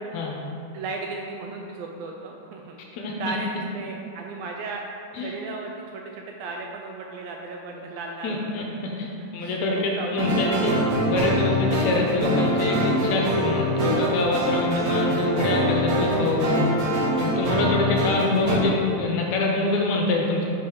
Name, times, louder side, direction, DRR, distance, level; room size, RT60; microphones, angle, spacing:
voice 1, 0.7-2.8 3.2-4.8 5.1-8.9 9.2-10.6 14.6-15.0 17.5-17.8 19.5-20.0, right 3 dB, 85° right, 1 dB, 1.4 m, -36 dB
voice 2, 2.9-3.4 5.1-5.3 8.2-10.7 11.0-20.4, left 2 dB, 75° left, -1 dB, 1.9 m, -25 dB
sound 1, 10.2-18.5, equal, 65° right, 2.3 m, -24 dB
5.4 x 5.0 x 4.6 m, 2.6 s
omnidirectional pair, 3.4 m